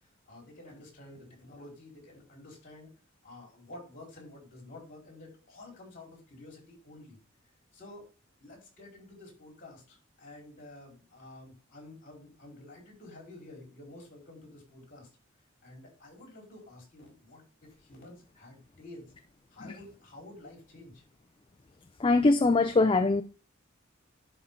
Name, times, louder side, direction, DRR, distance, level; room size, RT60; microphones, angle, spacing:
voice 1, 0.3-2.9 3.2-7.2 7.7-8.1 8.4-15.1 15.6-19.1 19.5-21.0, left 2 dB, 40° left, 4.5 m, -50 dB
voice 2, 22.0-23.2, left 3 dB, 25° left, 0.4 m, -23 dB
11.0 x 4.4 x 3.7 m
head